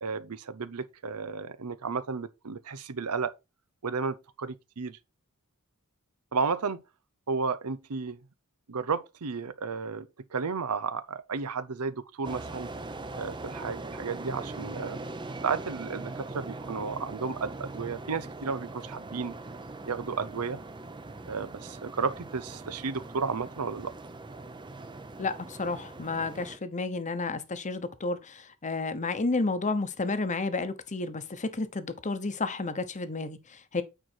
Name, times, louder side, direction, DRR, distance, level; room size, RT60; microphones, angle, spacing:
voice 1, 0.0-3.3 3.8-5.0 6.3-6.8 7.3-8.2 8.7-12.7 13.2-15.0 15.4-19.4 19.9-20.6 21.3-23.9, right 5 dB, 90° right, 0.7 m, -33 dB
sound 1, 12.2-26.6, right 2 dB, 20° right, 0.7 m, -41 dB
voice 2, 25.2-33.8, left 3 dB, 35° left, 0.9 m, -31 dB
9.0 x 4.6 x 4.4 m
head